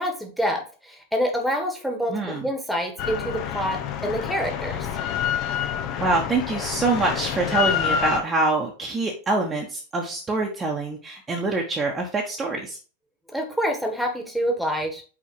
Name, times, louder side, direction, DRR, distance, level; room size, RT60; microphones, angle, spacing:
voice 1, 0.0-4.9 13.3-15.0, equal, ahead, 4 dB, 1.6 m, -27 dB
voice 2, 2.1-2.4 5.5-5.6 6.0-12.8, right 3 dB, 15° right, 0 dB, 1.2 m, -25 dB
Drill, 3.0-8.2, left 8 dB, 40° left, 0.9 m, -27 dB
5.6 x 4.9 x 4.8 m, 0.37 s
figure-of-eight pair, 90°, 0 cm